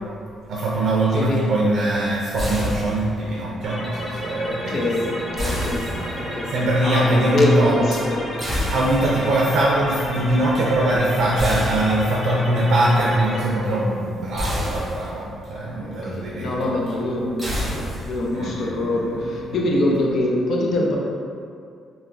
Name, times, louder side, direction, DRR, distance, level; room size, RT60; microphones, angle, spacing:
voice 1, 0.5-7.8 8.7-16.7 18.3-19.5, right 1 dB, 70° right, -4 dB, 0.4 m, -22 dB
voice 2, 1.2-1.5 4.4-5.1 5.3-5.9 6.1-6.5 6.8-8.2 15.8-21.0, left 1 dB, 60° left, -2 dB, 0.5 m, -24 dB
sound 1, 2.4-3.3 5.4-6.5 8.4-9.3 11.4-12.4 14.4-15.3 17.4-18.4, left 1 dB, 15° right, 1.0 m, -28 dB
sound 2, 3.6-13.4, equal, 25° left, 0.7 m, -33 dB
3.6 x 2.1 x 2.3 m, 2.3 s
cardioid pair, 90°, 0 cm